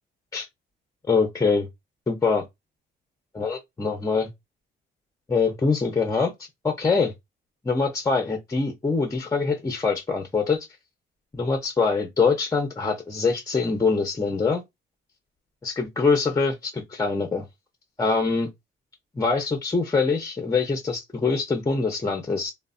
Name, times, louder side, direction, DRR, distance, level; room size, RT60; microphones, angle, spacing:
voice 1, 1.1-1.7 2.1-2.4 3.3-4.3 5.3-6.3 6.6-7.1 7.6-10.6 11.3-14.6 15.6-17.5 18.0-18.5 19.2-22.5, left 4 dB, 15° left, 0.6 m, -24 dB
3.1 x 2.1 x 2.4 m
cardioid pair, 90°, 20 cm